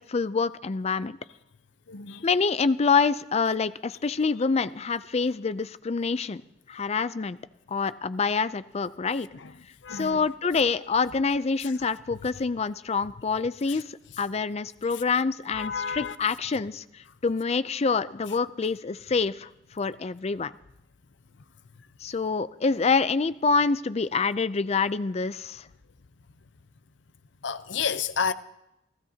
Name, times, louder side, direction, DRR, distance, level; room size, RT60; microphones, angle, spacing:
voice 1, 0.1-1.2 2.2-6.4 6.7-7.4 7.7-9.3 9.9-20.5 22.0-25.6, left 4 dB, 35° left, 0.5 m, -26 dB
voice 2, 1.9-2.3 9.3-9.5 9.8-10.2 11.6-11.7 13.7-13.8 15.5-16.2 27.4-28.3, left 6 dB, 70° left, 0.7 m, -30 dB
28.5 x 16.0 x 2.8 m
head